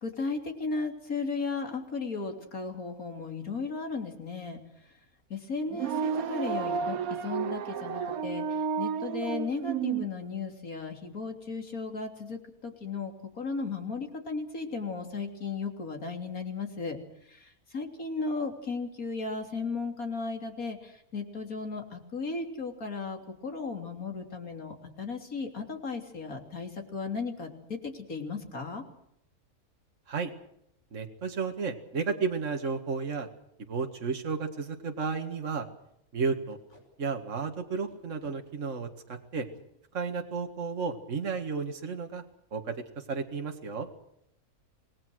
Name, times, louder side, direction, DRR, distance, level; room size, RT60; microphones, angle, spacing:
voice 1, 0.0-4.9 5.3-17.0 17.3-28.8, left 4 dB, 80° left, 5 dB, 3.7 m, -35 dB
sound 1, 5.7-10.1, right 7 dB, 80° right, 1.5 m, -31 dB
voice 2, 30.9-33.3 33.7-35.7 36.1-36.6 37.0-39.5 39.9-42.2 42.5-43.9, right 5 dB, 60° right, 4 dB, 2.2 m, -33 dB
Packing tape duct tape, 33.5-33.6 33.8-33.9 34.4-34.5 34.8-35.0 35.3-35.5 36.5-36.9 37.9-38.4 39.3-39.7 41.2-41.4 41.7-41.9 42.2-42.6, left 1 dB, 55° left, 5.9 m, -59 dB
26.5 x 20.0 x 6.4 m, 0.76 s
omnidirectional pair, 1.5 m